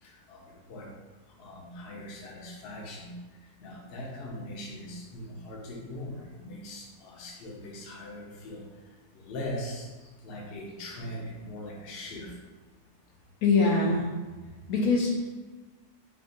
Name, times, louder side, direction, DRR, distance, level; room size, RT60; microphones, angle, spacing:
voice 1, 0.0-0.9 1.4-3.3 3.6-8.6 9.1-9.9 10.2-12.4, left 1 dB, 50° left, -2 dB, 0.7 m, -40 dB
voice 2, 13.4-14.1 14.7-15.3, left 3 dB, 75° left, -1 dB, 1.0 m, -23 dB
3.6 x 2.5 x 3.8 m, 1.3 s
omnidirectional pair, 1.7 m